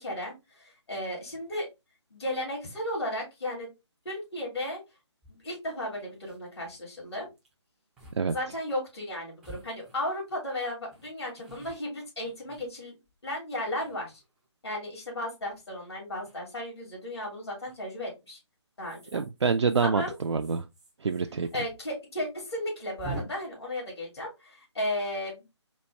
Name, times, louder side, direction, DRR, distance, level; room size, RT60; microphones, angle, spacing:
voice 1, 0.0-1.7 2.1-3.7 4.0-4.8 5.3-7.3 8.3-13.0 13.2-14.1 14.6-18.4 18.8-19.2 19.8-20.1 21.5-25.4, left 1 dB, 60° left, 2.3 m, -34 dB
sound 1, 5.2-5.3 5.8-5.9 6.1-6.5 7.4-7.5 8.0-8.2 8.5-8.6 9.4-10.4 10.9-13.1 13.7-14.5 16.1-16.4 17.7-18.0 18.8-21.6 21.8-21.9 22.2-22.3 23.0-23.2, right 2 dB, 5° right, 0.4 m, -46 dB
voice 2, 19.1-20.6 21.0-21.5, right 5 dB, 70° right, 0.4 m, -26 dB
4.2 x 2.3 x 3.2 m
figure-of-eight pair, 150°, 15 cm